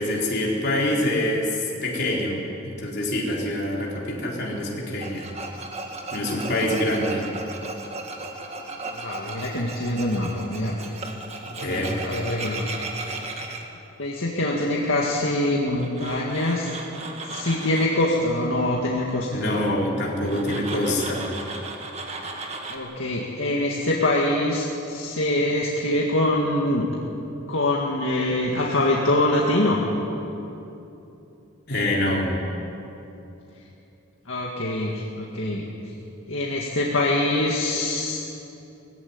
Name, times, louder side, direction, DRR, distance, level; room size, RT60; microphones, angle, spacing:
voice 1, 0.0-5.3 6.1-7.3 11.6-12.0 19.3-21.3 31.7-32.3, left 1 dB, 50° left, -3 dB, 4.1 m, -25 dB
Tools, 5.0-13.6 15.8-18.0 20.2-22.8, right 3 dB, 30° right, 1.8 m, -36 dB
voice 2, 9.0-10.7 11.5-12.7 14.0-16.7 17.2-19.4 22.7-26.9 27.5-29.8 34.3-35.6 36.3-38.2, left 1 dB, 70° left, -3 dB, 2.0 m, -24 dB
19.5 x 16.0 x 9.7 m, 2.9 s
head